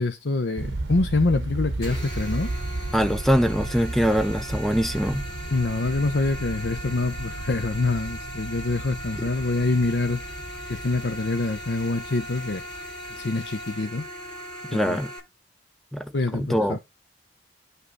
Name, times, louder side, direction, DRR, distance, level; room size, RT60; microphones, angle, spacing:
voice 1, 0.0-2.5 5.5-10.2 10.7-12.6 13.2-14.0 14.7-15.0 16.1-16.8, left 3 dB, 75° left, 0.8 m, -25 dB
sound 1, 0.6-13.9, right 2 dB, 90° right, 0.9 m, -34 dB
sound 2, 1.8-15.2, equal, 20° left, 6.8 m, -39 dB
voice 2, 2.9-5.2 14.7-15.1 15.9-16.8, equal, ahead, 0.6 m, -23 dB
9.7 x 5.6 x 3.9 m
head